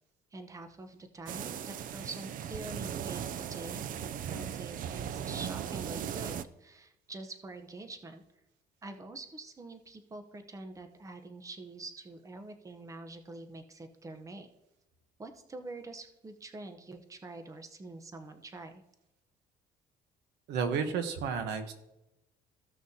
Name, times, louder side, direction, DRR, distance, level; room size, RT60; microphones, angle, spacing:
voice 1, 0.3-8.2 8.8-14.5 15.2-18.8, right 2 dB, 20° right, 7 dB, 0.8 m, -45 dB
sound 1, 1.3-6.4, right 9 dB, 55° right, 0.4 m, -38 dB
voice 2, 20.5-21.7, right 6 dB, 85° right, 8 dB, 1.0 m, -32 dB
15.0 x 6.2 x 2.8 m, 0.89 s
cardioid pair, 110°, 17 cm